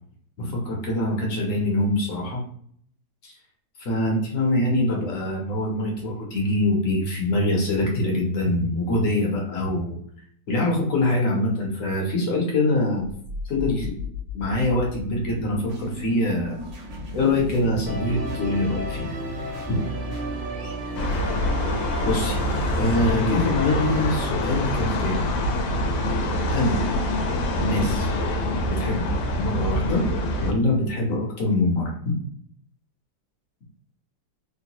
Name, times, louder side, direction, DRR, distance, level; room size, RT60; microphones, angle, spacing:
voice 1, 0.4-2.4 3.2-3.3 3.8-10.0 10.5-13.1 13.5-16.6 17.1-19.1 19.7-19.8 22.0-22.4 22.8-25.2 26.5-26.8 27.6-28.1 28.7-29.0 29.4-30.0 30.4-31.9, left 1 dB, 55° left, -1 dB, 1.0 m, -24 dB
sound 1, 13.2-24.0, left 2 dB, 80° right, 1.7 m, -37 dB
Musical instrument, 17.9-24.3, right 1 dB, 65° right, 0.9 m, -32 dB
sound 2, 21.0-30.5, left 1 dB, 90° left, 1.3 m, -25 dB
3.6 x 2.1 x 2.8 m, 0.63 s
omnidirectional pair, 1.9 m